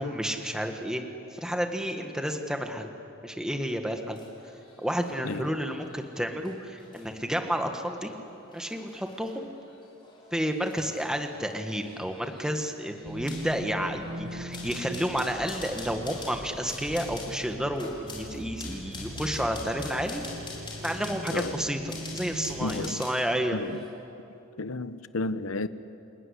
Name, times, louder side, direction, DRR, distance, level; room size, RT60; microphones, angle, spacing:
voice 1, 0.0-2.9 3.2-4.2 4.8-8.1 8.5-9.5 10.3-20.2 20.8-23.6, equal, 5° right, 1.6 m, -31 dB
sound 1, 4.0-23.3 23.6-23.9, left 3 dB, 25° left, 5.1 m, -46 dB
sound 2, 13.0-22.9, right 1 dB, 60° right, 1.7 m, -40 dB
voice 2, 21.3-21.6 22.6-23.1 23.5-23.8 24.6-25.7, left 2 dB, 90° left, 1.0 m, -32 dB
29.0 x 18.5 x 9.9 m
head